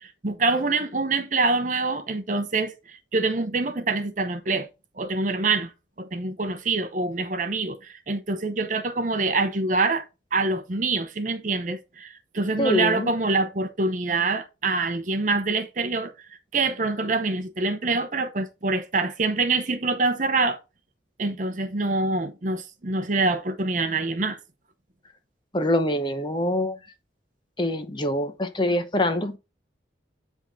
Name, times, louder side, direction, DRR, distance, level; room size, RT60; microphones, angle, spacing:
voice 1, 0.0-4.7 5.0-5.7 6.0-10.0 10.3-16.1 16.5-20.6 21.2-24.4, right 3 dB, 45° right, 0.8 m, -25 dB
voice 2, 12.6-13.1 25.5-26.8 27.6-29.4, left 1 dB, 25° left, 0.8 m, -24 dB
9.5 x 3.7 x 4.0 m
head